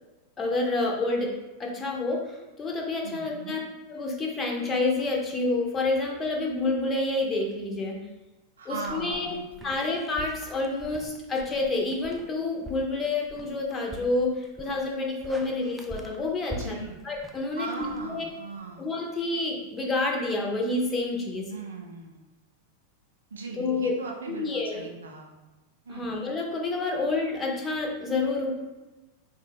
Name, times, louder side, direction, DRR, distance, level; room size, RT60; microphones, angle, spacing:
voice 1, 0.4-1.3 1.6-3.6 3.9-8.0 8.7-9.3 9.6-16.8 17.0-18.3 18.8-21.5 23.6-23.9 24.3-24.8 25.9-28.5, left 2 dB, 20° left, 0 dB, 0.8 m, -28 dB
voice 2, 3.0-3.6 8.6-9.8 16.5-17.0 17.5-18.9 21.5-22.2 23.3-25.3 25.8-26.2, right 4 dB, 70° right, 0 dB, 0.6 m, -39 dB
sound 1, 8.8-18.6, equal, 5° right, 0.3 m, -45 dB
4.0 x 2.4 x 3.3 m, 1.1 s
figure-of-eight pair, 90°, 0 cm